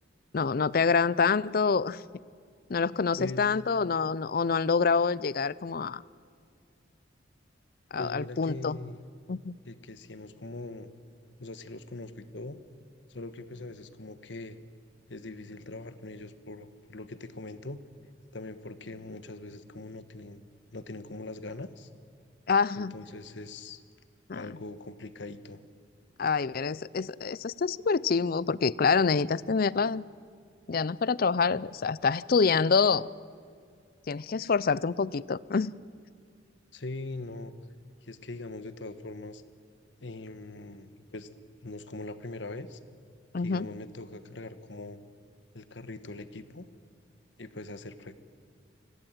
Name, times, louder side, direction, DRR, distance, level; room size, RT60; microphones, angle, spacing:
voice 1, 0.3-2.0 2.7-6.0 7.9-8.8 9.3-9.6 22.5-22.9 24.3-24.5 26.2-30.0 30.7-33.1 34.1-35.7 43.3-43.7, left 5 dB, 50° left, 20 dB, 0.5 m, -26 dB
voice 2, 8.0-9.0 9.6-10.9 11.4-12.6 13.1-14.6 15.1-17.8 18.3-21.9 22.8-23.8 24.3-25.6 36.7-37.5 38.0-39.4 40.0-41.3 41.6-42.8 43.4-45.0 45.5-46.7 47.4-48.2, left 2 dB, 70° left, 12 dB, 1.3 m, -41 dB
25.0 x 16.5 x 9.0 m, 2.2 s
head